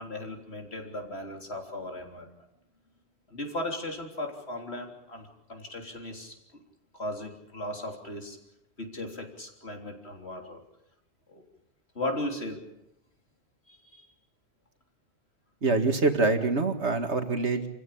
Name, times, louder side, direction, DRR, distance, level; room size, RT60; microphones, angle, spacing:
voice 1, 0.0-2.3 3.3-6.3 6.9-8.4 8.8-10.6 11.3-11.4 12.0-12.6 13.7-14.0, left 1 dB, 65° left, 2 dB, 3.9 m, -37 dB
voice 2, 15.6-17.7, right 3 dB, 70° right, 6 dB, 2.3 m, -25 dB
28.0 x 16.0 x 8.6 m, 0.85 s
omnidirectional pair, 1.2 m